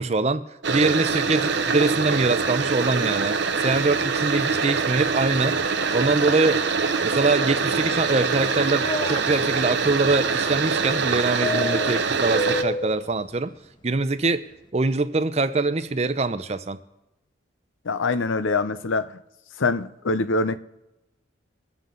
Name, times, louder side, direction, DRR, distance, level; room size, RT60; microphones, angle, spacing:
voice 1, 0.0-5.6 5.9-6.6 7.0-13.5 13.8-14.4 14.7-16.8, right 3 dB, 35° right, 0.6 m, -23 dB
sound 1, 0.6-12.6, right 5 dB, 60° right, 0.8 m, -24 dB
sound 2, 8.0-9.2 11.4-13.0, left 2 dB, 25° left, 0.6 m, -29 dB
voice 2, 17.8-19.2 19.6-20.6, left 3 dB, 85° left, 0.7 m, -24 dB
22.0 x 7.4 x 3.9 m
head